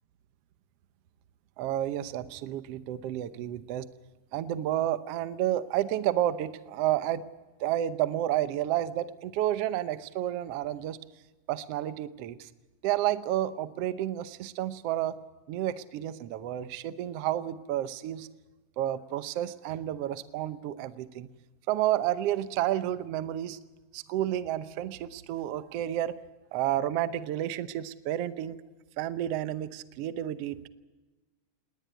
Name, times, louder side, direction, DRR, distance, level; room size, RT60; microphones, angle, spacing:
voice 1, 1.6-3.9 4.3-7.2 7.6-11.0 11.5-12.5 12.8-15.2 15.5-18.3 18.8-21.3 21.7-23.6 23.9-26.2 26.5-28.6 29.0-30.7, right 12 dB, 90° right, 14 dB, 1.3 m, -30 dB
20.0 x 19.0 x 9.1 m, 1.2 s
omnidirectional pair, 4.0 m